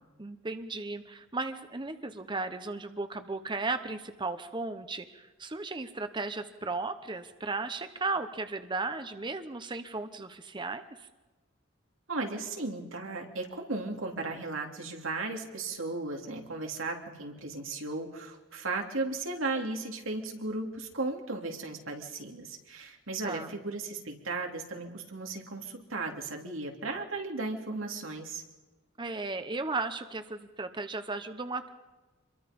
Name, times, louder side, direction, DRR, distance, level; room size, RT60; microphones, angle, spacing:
voice 1, 0.2-11.1 23.2-23.5 29.0-31.7, right 3 dB, 25° right, 9 dB, 0.9 m, -35 dB
voice 2, 12.1-28.4, right 3 dB, 90° right, 2 dB, 3.3 m, -36 dB
26.5 x 22.5 x 5.4 m, 1.2 s
head